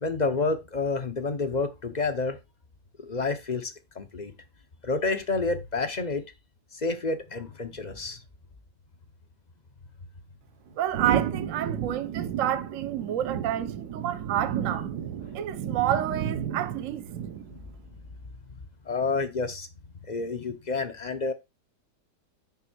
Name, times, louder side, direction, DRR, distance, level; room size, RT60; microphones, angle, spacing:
voice 1, 0.0-2.4 3.0-4.3 4.8-6.2 6.7-8.2 15.3-15.4 18.9-19.7 20.1-21.3, left 3 dB, 35° left, 0.7 m, -29 dB
voice 2, 10.8-14.9 15.3-17.0, right 11 dB, 55° right, 1.0 m, -29 dB
sound 1, 10.9-17.7, right 9 dB, 75° right, 1.6 m, -32 dB
9.2 x 3.3 x 6.1 m
omnidirectional pair, 1.8 m